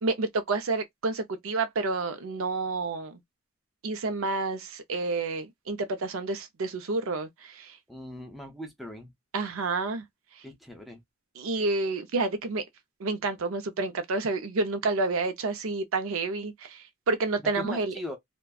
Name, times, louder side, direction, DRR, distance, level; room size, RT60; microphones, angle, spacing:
voice 1, 0.0-3.2 3.8-7.8 9.3-10.0 10.3-10.4 11.4-12.6 13.0-18.0, right 3 dB, 90° right, 0.5 m, -29 dB
voice 2, 7.9-9.1 10.4-11.0 17.5-18.2, left 1 dB, ahead, 0.5 m, -40 dB
2.5 x 2.1 x 2.3 m
head